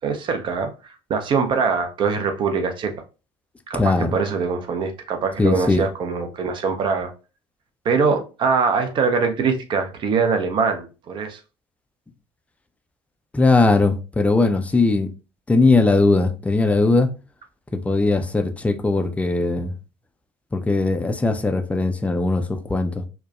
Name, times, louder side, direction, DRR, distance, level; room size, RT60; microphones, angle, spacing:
voice 1, 0.0-2.9 3.7-7.1 7.8-11.4, right 5 dB, 35° right, 0.6 m, -23 dB
voice 2, 3.8-4.1 5.4-5.8 13.3-15.1 15.5-17.1 17.7-19.7 20.5-23.1, left 3 dB, 10° left, 0.4 m, -19 dB
4.5 x 2.1 x 2.3 m
figure-of-eight pair, 60°, 13 cm